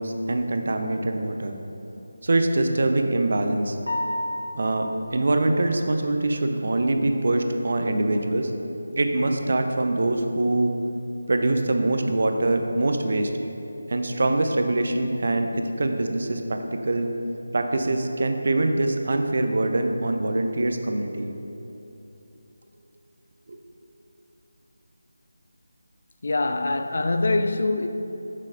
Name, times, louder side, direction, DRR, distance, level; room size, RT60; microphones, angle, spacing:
voice 1, 0.0-1.5 2.2-3.8 4.5-8.5 9.0-10.7 11.3-13.3 13.9-17.1 17.5-21.3 23.5-23.6, right 2 dB, 55° right, 0.6 m, -24 dB
sound 1, 3.9-4.9, left 1 dB, 75° left, 1.7 m, -29 dB
voice 2, 26.2-27.9, left 2 dB, 55° left, 0.4 m, -24 dB
7.2 x 6.6 x 3.8 m
figure-of-eight pair, 160°, 0 cm